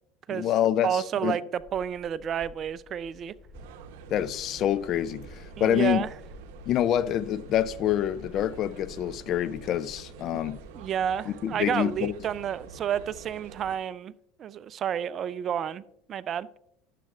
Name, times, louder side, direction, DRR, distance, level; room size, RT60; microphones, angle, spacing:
voice 1, 0.3-1.4 4.1-6.0 6.7-10.6 11.3-12.1, left 11 dB, 50° left, 0.4 m, -26 dB
voice 2, 0.8-3.3 5.6-6.1 10.7-14.1 14.4-15.8 16.1-16.5, right 9 dB, 40° right, 0.3 m, -30 dB
sound 1, 1.6-11.0, left 3 dB, 15° left, 1.4 m, -51 dB
sound 2, 3.5-13.8, right 6 dB, 75° right, 0.8 m, -47 dB
11.0 x 7.4 x 2.4 m
hypercardioid pair, 95°, 0 cm